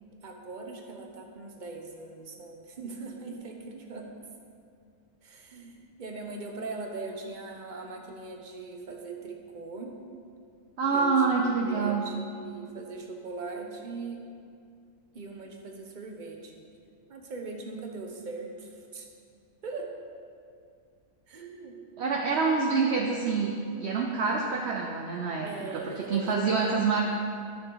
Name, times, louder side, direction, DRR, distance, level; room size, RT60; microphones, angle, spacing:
voice 1, 0.2-4.1 5.2-10.0 10.9-14.2 15.1-16.6 17.1-19.1 19.6-19.9 21.3-21.7 25.4-26.8, right 3 dB, 40° right, 2 dB, 1.0 m, -40 dB
voice 2, 10.8-12.0 22.0-25.5 25.7-27.0, right 4 dB, 60° right, 0 dB, 0.9 m, -26 dB
12.0 x 6.5 x 3.9 m, 2.3 s
omnidirectional pair, 1.4 m